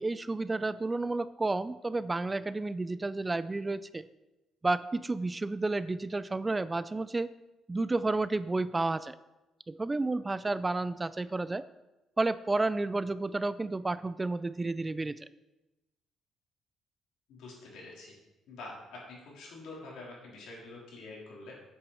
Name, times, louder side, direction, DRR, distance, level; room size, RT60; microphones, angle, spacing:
voice 1, 0.0-4.1 4.6-7.3 7.7-9.2 9.7-11.7 12.2-15.3, right 2 dB, 20° right, 16 dB, 0.3 m, -31 dB
voice 2, 17.3-18.1 18.5-21.5, left 2 dB, 80° left, -4 dB, 3.8 m, -46 dB
8.6 x 8.1 x 4.9 m, 1.0 s
cardioid pair, 115°, 0 cm